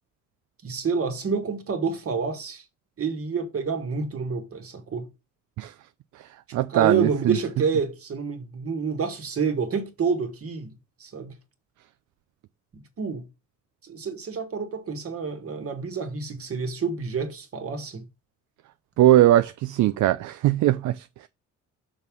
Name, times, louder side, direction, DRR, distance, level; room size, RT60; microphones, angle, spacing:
voice 1, 0.6-2.6 3.0-5.1 6.7-11.3 12.7-13.2 13.8-18.0, right 5 dB, 50° right, 1.8 m, -28 dB
voice 2, 6.2-7.4 19.0-21.3, right 14 dB, 70° right, 0.5 m, -21 dB
6.2 x 3.7 x 6.1 m
cardioid pair, 90°, 30 cm